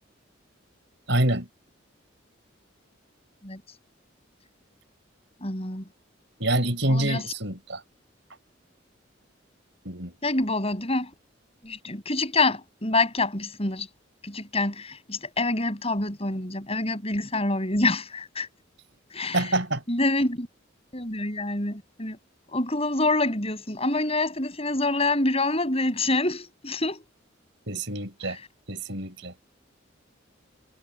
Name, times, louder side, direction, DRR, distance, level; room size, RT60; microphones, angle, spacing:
voice 1, 1.1-1.5 6.4-7.8 9.9-10.2 19.3-19.8 27.7-28.4 28.7-29.3, right 1 dB, 65° right, 5.2 m, -26 dB
voice 2, 5.4-5.8 6.9-7.2 10.2-11.1 11.6-13.9 14.2-18.5 19.1-19.5 19.9-20.5 20.9-22.2 22.5-27.0, left 2 dB, 30° left, 7.7 m, -26 dB
head